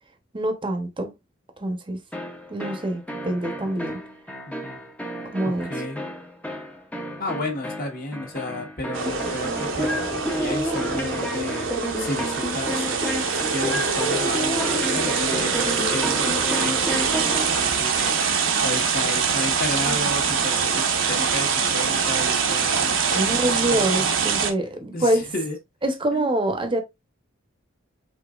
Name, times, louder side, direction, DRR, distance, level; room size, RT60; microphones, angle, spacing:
voice 1, 0.3-1.1 1.6-2.0 2.5-4.0 5.3-5.7 19.8-20.1 23.1-25.3 25.8-26.8, right 1 dB, 25° right, 0.9 m, -25 dB
sound 1, 2.1-17.6, equal, 5° left, 0.7 m, -31 dB
voice 2, 4.5-4.8 5.4-6.0 7.2-11.7 12.0-24.0 24.9-25.6 26.1-26.3, left 2 dB, 45° left, 1.4 m, -33 dB
sound 2, 8.9-24.5, right 6 dB, 65° right, 0.9 m, -24 dB
5.1 x 3.9 x 2.4 m
head